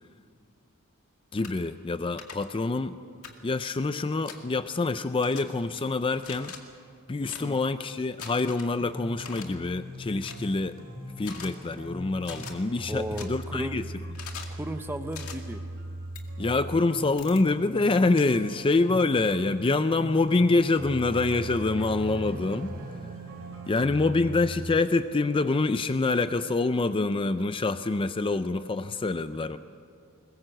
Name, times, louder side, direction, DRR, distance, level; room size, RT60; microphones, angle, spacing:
voice 1, 1.3-3.0 3.4-6.5 7.1-10.8 11.2-13.9 16.4-22.7 23.7-29.6, left 3 dB, 25° left, 11 dB, 0.4 m, -26 dB
sound 1, 1.4-1.5 2.2-2.3 3.2-3.4 4.3-4.4 5.2-5.4 6.2-6.6 7.2-7.4 8.2-8.7 9.2-9.5 10.2-10.4 11.2-11.5 12.2-12.5 13.2-13.3 14.2-14.5 15.1-15.4 16.2-16.3 17.2-17.4 18.2-18.3, left 7 dB, 70° left, 2.2 m, -42 dB
sound 2, 8.8-24.8, right 1 dB, 60° right, 4.8 m, -40 dB
voice 2, 12.9-13.8 14.6-15.6, right 1 dB, 10° right, 8 dB, 0.7 m, -35 dB
sound 3, 21.0-24.4, right 2 dB, 40° right, 0.9 m, -43 dB
22.0 x 20.5 x 7.8 m, 2.3 s
head